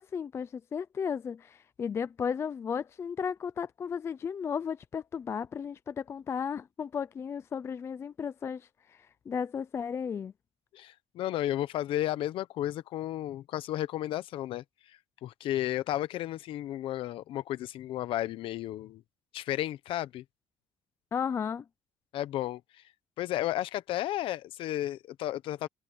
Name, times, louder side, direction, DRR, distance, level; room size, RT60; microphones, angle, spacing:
voice 1, 0.0-10.3 21.1-21.6, left 7 dB, 25° left, 0.4 m, -34 dB
voice 2, 10.7-14.6 15.2-19.0 19.3-20.2 22.1-22.6 23.2-25.7, left 13 dB, 60° left, 1.0 m, -33 dB
cardioid pair, 160°, 10 cm